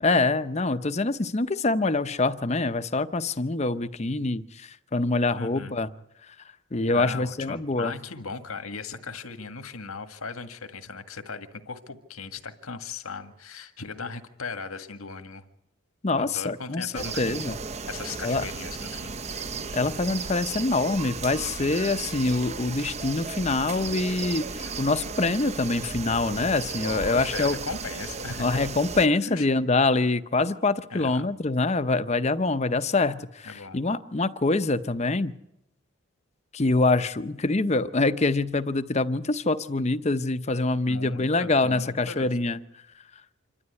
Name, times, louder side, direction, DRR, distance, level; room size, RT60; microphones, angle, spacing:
voice 1, 0.0-5.9 6.7-7.9 16.0-17.6 18.2-18.4 19.7-27.6 28.4-35.3 36.5-42.6, left 3 dB, 30° left, 12 dB, 0.7 m, -25 dB
voice 2, 5.3-5.8 6.9-15.4 16.2-17.6 17.9-19.2 26.8-28.6 29.2-29.5 30.9-31.3 33.5-33.8 40.9-42.3, left 4 dB, 85° left, 7 dB, 1.9 m, -38 dB
sound 1, 16.9-29.1, right 4 dB, 30° right, 0.7 m, -35 dB
26.5 x 12.5 x 9.7 m, 0.85 s
head